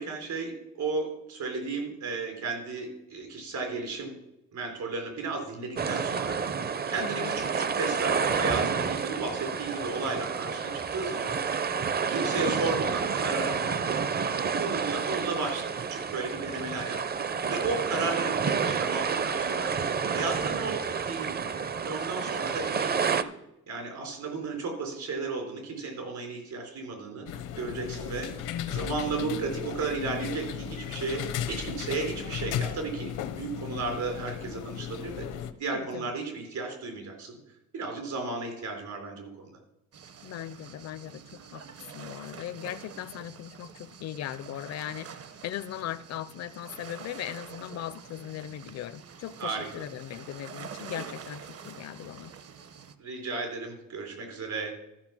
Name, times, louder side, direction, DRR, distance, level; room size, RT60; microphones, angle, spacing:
voice 1, 0.0-4.2 4.5-6.4 6.9-11.3 12.1-13.6 14.6-17.0 17.4-19.7 20.1-20.8 21.1-23.3 23.7-27.3 27.6-28.3 28.7-35.3 35.6-37.4 37.7-39.5 49.4-49.7 53.0-54.7, right 4 dB, 70° right, 3 dB, 4.0 m, -34 dB
sound 1, 5.8-23.2, right 6 dB, 30° right, 0.6 m, -29 dB
voice 2, 7.0-7.4 12.3-12.6 35.7-36.1 40.2-41.6 41.9-52.3, left 12 dB, 60° left, 14 dB, 0.5 m, -39 dB
sound 2, 27.3-35.5, left 9 dB, 85° left, 0.9 m, -35 dB
sound 3, 39.9-52.9, right 7 dB, 50° right, 1.0 m, -46 dB
13.5 x 5.6 x 6.0 m, 0.89 s
cardioid pair, 90°, 30 cm